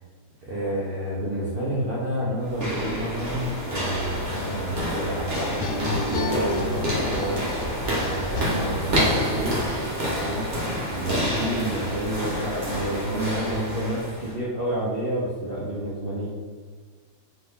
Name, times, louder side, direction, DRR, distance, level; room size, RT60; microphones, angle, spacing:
voice 1, 0.4-5.7 6.1-7.5 8.2-9.6 10.1-10.5 10.9-16.3, right 1 dB, 75° right, -8 dB, 0.5 m, -29 dB
sound 1, 2.4-14.3, equal, 40° right, 1.0 m, -28 dB
sound 2, 5.3-9.0, left 1 dB, 85° left, 1.4 m, -31 dB
4.1 x 2.9 x 3.5 m, 1.5 s
omnidirectional pair, 2.1 m